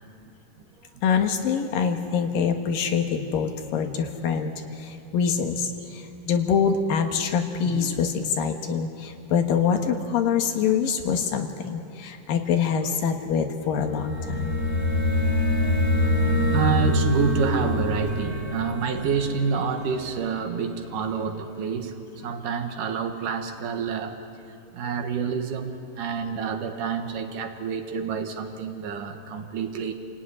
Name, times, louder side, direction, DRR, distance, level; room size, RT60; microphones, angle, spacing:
voice 1, 1.0-4.5 4.8-14.6, left 6 dB, 80° left, 5 dB, 3.1 m, -25 dB
voice 2, 7.6-8.0 16.2-22.0 22.2-24.2 24.7-29.9, right 6 dB, 70° right, 5 dB, 2.9 m, -28 dB
sound 1, 13.8-20.5, left 1 dB, 15° left, 4.4 m, -25 dB
28.0 x 17.5 x 9.7 m, 2.8 s
omnidirectional pair, 4.0 m